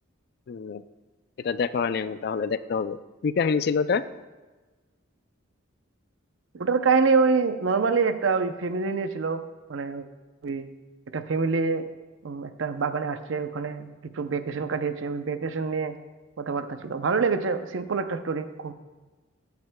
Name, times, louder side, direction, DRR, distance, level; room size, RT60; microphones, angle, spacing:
voice 1, 0.5-0.8 1.4-4.0, left 5 dB, 50° left, 14 dB, 0.3 m, -26 dB
voice 2, 6.5-9.4 9.7-10.1 10.4-10.7 11.1-11.9 12.2-15.9 16.4-18.7, right 4 dB, 75° right, 10 dB, 0.6 m, -26 dB
13.0 x 9.4 x 2.2 m, 1.3 s
head